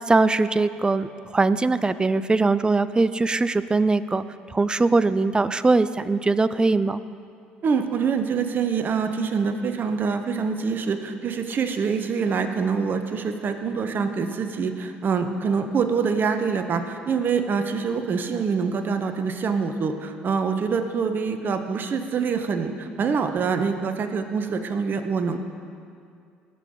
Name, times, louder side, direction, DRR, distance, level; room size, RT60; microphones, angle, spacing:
voice 1, 0.1-4.2 4.5-7.0, right 3 dB, 20° right, 15 dB, 0.4 m, -21 dB
voice 2, 7.6-25.4, right 5 dB, 45° right, 7 dB, 1.0 m, -25 dB
18.0 x 7.0 x 3.9 m, 2.4 s
hypercardioid pair, 60°, 5 cm